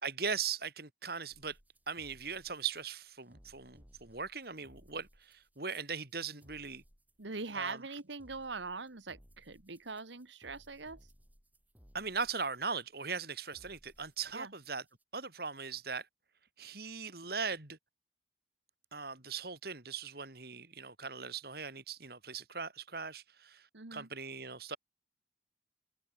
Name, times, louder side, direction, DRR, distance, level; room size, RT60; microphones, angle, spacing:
voice 1, 0.0-1.6 1.9-6.8 7.5-7.8 11.9-14.8 15.1-16.1 16.6-17.8 18.9-24.8, right 5 dB, 55° right, 3.1 m, -39 dB
sound 1, 1.3-15.0, equal, 10° right, 6.6 m, -63 dB
voice 2, 7.2-11.0 14.3-14.5 23.7-24.1, right 4 dB, 75° right, 1.7 m, -42 dB
head